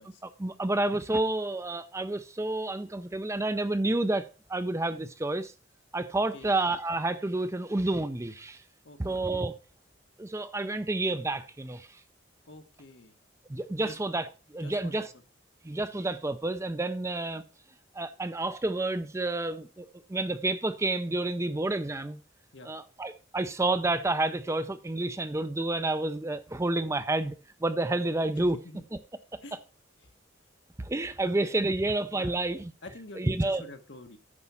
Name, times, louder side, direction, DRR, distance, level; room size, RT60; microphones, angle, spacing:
voice 1, 0.2-5.5 5.9-8.6 9.0-9.5 10.2-11.9 13.5-15.1 15.6-17.4 17.9-22.2 22.6-27.4 27.6-28.6 30.8-32.7 33.2-33.6, right 2 dB, 15° right, 0.5 m, -29 dB
voice 2, 8.8-9.4 12.5-13.1 13.8-14.0 14.6-15.1 22.5-22.7 28.4-28.8 29.4-29.6 30.0-30.1 32.1-32.4 32.8-34.2, left 2 dB, 60° left, 1.2 m, -47 dB
9.7 x 5.9 x 5.5 m
head